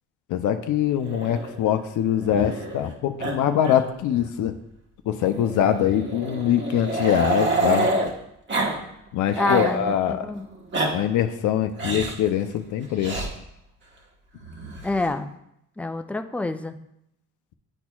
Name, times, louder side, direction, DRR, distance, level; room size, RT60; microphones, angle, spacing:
voice 1, 0.3-4.5 5.1-7.9 9.1-10.3 10.9-13.2, left 10 dB, 70° left, 8 dB, 0.5 m, -23 dB
Growling, 1.0-2.9 3.2-3.4 3.6-3.8 4.1-4.2 5.2-8.1 8.5-8.7 9.1-9.8 10.5-10.9 11.8-12.2 13.0-13.3 14.4-15.1, right 2 dB, 35° right, 1.3 m, -28 dB
voice 2, 9.3-10.5 14.8-15.3 15.8-16.8, left 2 dB, 5° left, 8 dB, 0.3 m, -27 dB
10.5 x 4.2 x 2.3 m, 0.79 s
cardioid pair, 95°, 31 cm